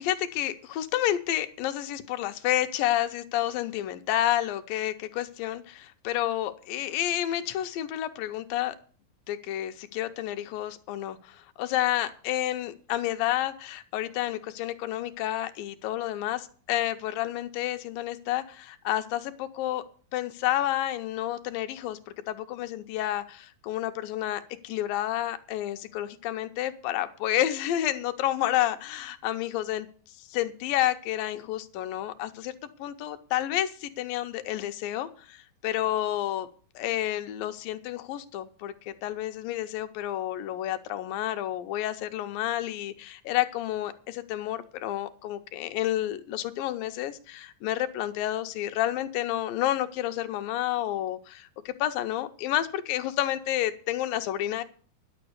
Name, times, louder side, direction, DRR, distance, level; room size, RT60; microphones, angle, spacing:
voice 1, 0.0-8.8 9.3-19.8 20.1-22.0 22.3-29.9 30.2-32.5 32.8-36.5 36.8-54.6, left 13 dB, 75° left, 9 dB, 2.4 m, -30 dB
11.0 x 6.9 x 8.0 m, 0.43 s
omnidirectional pair, 4.2 m